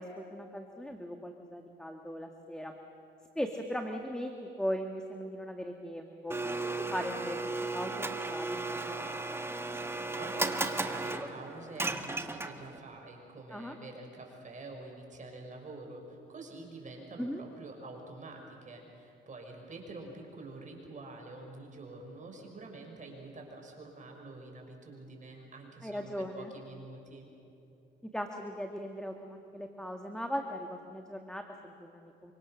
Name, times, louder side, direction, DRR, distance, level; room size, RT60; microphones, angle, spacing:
voice 1, 0.0-2.8 3.4-9.4 13.5-13.8 17.2-17.4 25.8-26.5 28.1-32.3, equal, 5° left, 4 dB, 1.8 m, -39 dB
Domestic sounds home sounds, 6.3-12.8, right 2 dB, 10° right, 1.5 m, -35 dB
voice 2, 10.2-27.3, right 2 dB, 40° right, 1 dB, 5.8 m, -47 dB
26.5 x 25.0 x 6.5 m, 2.9 s
cardioid pair, 90°, 20 cm